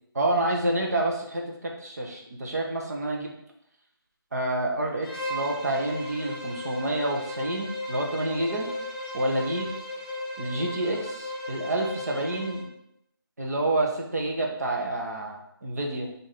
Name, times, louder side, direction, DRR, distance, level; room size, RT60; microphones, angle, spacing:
voice 1, 0.1-3.3 4.3-8.7 9.1-9.7 10.4-12.7 13.4-16.1, right 1 dB, 45° right, 0 dB, 0.8 m, -28 dB
Bowed string instrument, 5.0-12.7, left 1 dB, 10° left, 0.6 m, -36 dB
4.6 x 2.6 x 3.7 m, 0.75 s
figure-of-eight pair, 165°, 13 cm